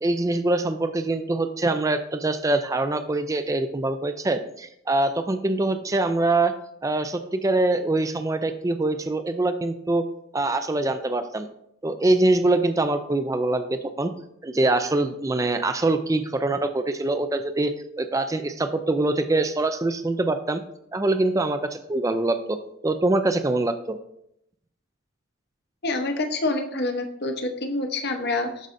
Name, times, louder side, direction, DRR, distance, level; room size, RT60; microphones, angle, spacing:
voice 1, 0.0-6.5 6.8-10.0 10.3-11.5 11.8-14.1 14.4-20.6 20.9-22.6 22.8-24.0, right 2 dB, 15° right, 9 dB, 0.3 m, -24 dB
voice 2, 25.8-28.7, left 2 dB, 50° left, 5 dB, 0.9 m, -27 dB
12.5 x 5.4 x 2.6 m, 0.76 s
head